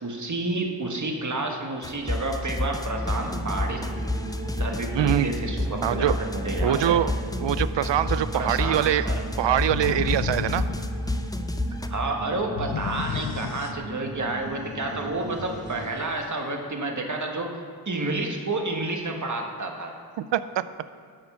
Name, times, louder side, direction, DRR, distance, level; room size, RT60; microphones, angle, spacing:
voice 1, 0.0-3.8 4.6-7.0 8.3-9.2 11.9-17.5 17.8-19.9, right 2 dB, 40° right, 2 dB, 1.4 m, -30 dB
sound 1, 1.8-11.9, left 1 dB, 10° left, 0.5 m, -29 dB
sound 2, 2.9-15.9, right 1 dB, 25° right, 1.5 m, -37 dB
voice 2, 4.9-5.3 5.8-6.2 6.6-7.1 7.4-9.0 9.4-10.6 20.2-20.6, right 11 dB, 65° right, 14 dB, 0.5 m, -23 dB
sound 3, 9.7-11.4 12.6-14.2, left 8 dB, 60° left, 0.5 m, -33 dB
11.5 x 4.3 x 6.9 m, 2.1 s
cardioid pair, 45°, 47 cm